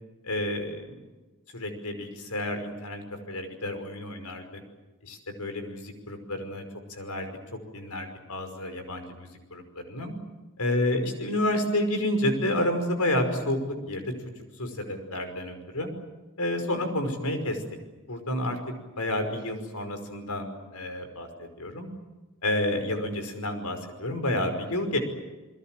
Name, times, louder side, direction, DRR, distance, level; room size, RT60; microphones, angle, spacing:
voice 1, 0.2-1.0 1.5-4.6 5.0-6.6 6.9-7.3 7.7-9.6 9.9-10.1 10.6-14.0 14.6-15.9 16.4-17.6 18.1-18.6 19.0-21.9 22.4-25.0, left 1 dB, 75° left, 7 dB, 5.5 m, -30 dB
29.0 x 22.0 x 7.8 m, 1.2 s
head